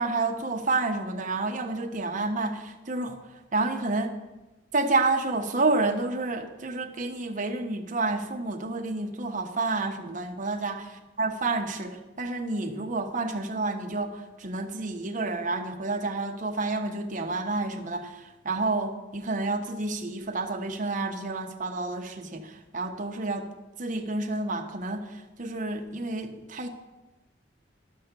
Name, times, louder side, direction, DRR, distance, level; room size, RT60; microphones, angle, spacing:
voice 1, 0.0-3.2 3.5-4.1 4.7-10.8 11.2-23.5 23.8-26.7, right 3 dB, 45° right, 4 dB, 1.1 m, -29 dB
12.5 x 5.9 x 6.7 m, 1.1 s
head